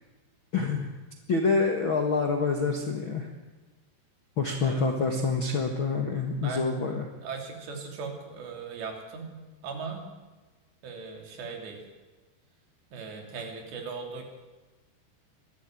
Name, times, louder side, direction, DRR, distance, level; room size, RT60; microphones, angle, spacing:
voice 1, 0.5-0.9 1.3-3.3 4.4-7.1, left 4 dB, 60° left, 3 dB, 1.3 m, -27 dB
voice 2, 6.4-7.0 7.2-10.0 10.8-11.8 12.9-14.3, right 5 dB, 80° right, 3 dB, 5.2 m, -38 dB
22.0 x 14.0 x 9.1 m, 1.2 s
omnidirectional pair, 4.9 m